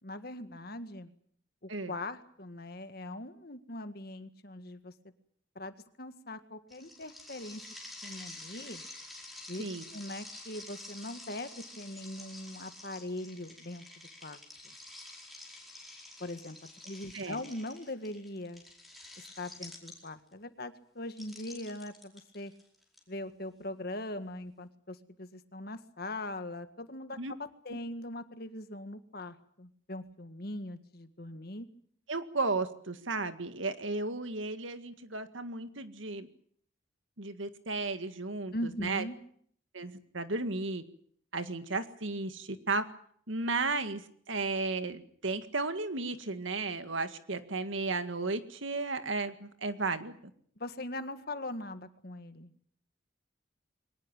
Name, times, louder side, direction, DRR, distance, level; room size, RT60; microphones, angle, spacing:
voice 1, 0.0-1.1 1.6-4.9 5.6-7.6 8.0-8.8 9.5-9.6 9.9-11.5 11.8-13.8 14.2-14.4 16.2-16.6 16.9-18.6 19.2-22.5 23.1-27.2 27.7-31.7 38.5-39.2 50.6-52.5, left 1 dB, 50° left, 9 dB, 1.8 m, -41 dB
sound 1, 6.7-20.3 21.1-23.0, left 2 dB, ahead, 5.0 m, -49 dB
voice 2, 32.1-36.3 37.2-39.1 39.7-40.8 41.3-42.9 43.3-50.2, right 3 dB, 85° right, 9 dB, 2.0 m, -34 dB
22.5 x 19.0 x 8.9 m, 0.63 s
head